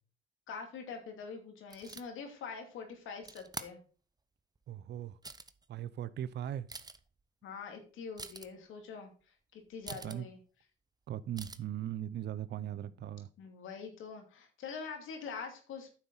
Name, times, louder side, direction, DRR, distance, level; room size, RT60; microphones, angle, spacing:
voice 1, 0.5-3.8 7.4-10.4 12.6-12.8 13.4-15.9, left 5 dB, 80° left, 2.6 m, -44 dB
sound 1, 1.7-2.0 3.2-3.7 4.6-4.7 5.1-5.6 6.2-6.3 6.5-7.1 8.2-8.5 9.8-10.2 11.3-11.6, right 3 dB, 20° right, 0.8 m, -45 dB
voice 2, 4.7-5.2 5.7-6.7 9.9-10.3 11.1-13.3, right 11 dB, 60° right, 0.6 m, -39 dB
9.2 x 7.1 x 4.0 m
cardioid pair, 90°, 20 cm